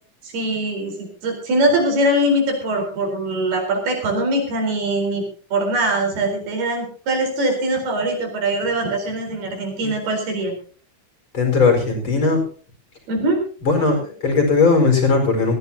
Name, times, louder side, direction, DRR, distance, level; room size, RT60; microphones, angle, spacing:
voice 1, 0.2-5.2 5.5-10.5 13.1-13.4, right 1 dB, 50° right, 2 dB, 6.0 m, -22 dB
voice 2, 11.3-12.4 13.6-15.6, left 4 dB, 25° left, 2 dB, 5.2 m, -18 dB
20.5 x 15.5 x 2.8 m, 0.42 s
omnidirectional pair, 5.9 m